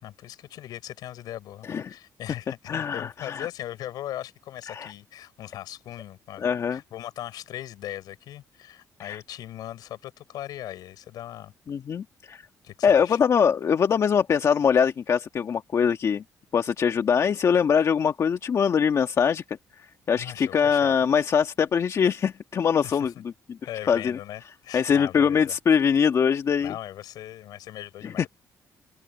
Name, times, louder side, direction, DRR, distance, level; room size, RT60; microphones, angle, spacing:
voice 1, 0.0-11.5 12.6-13.2 20.2-21.0 22.8-23.2 23.6-25.6 26.6-28.3, left 13 dB, 80° left, 6.4 m, -39 dB
voice 2, 2.7-3.5 4.7-4.9 6.4-6.8 9.0-9.2 11.7-12.4 12.8-16.2 16.5-19.6 20.1-23.1 23.5-23.6 23.9-24.2 24.7-26.7 28.0-28.3, left 7 dB, 50° left, 1.5 m, -23 dB
open air
cardioid pair, 100°, 7 cm